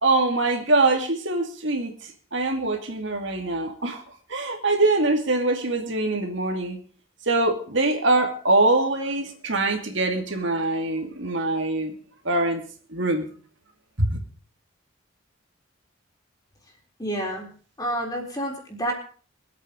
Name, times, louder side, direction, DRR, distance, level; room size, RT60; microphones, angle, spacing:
voice 1, 0.0-4.0 4.3-6.8 7.3-11.9 12.2-12.6 12.9-13.3 14.0-14.2, right 2 dB, 65° right, 3 dB, 2.5 m, -23 dB
voice 2, 17.0-17.5 17.8-18.9, right 1 dB, 20° left, 1 dB, 3.9 m, -29 dB
22.5 x 8.5 x 5.3 m, 0.42 s
head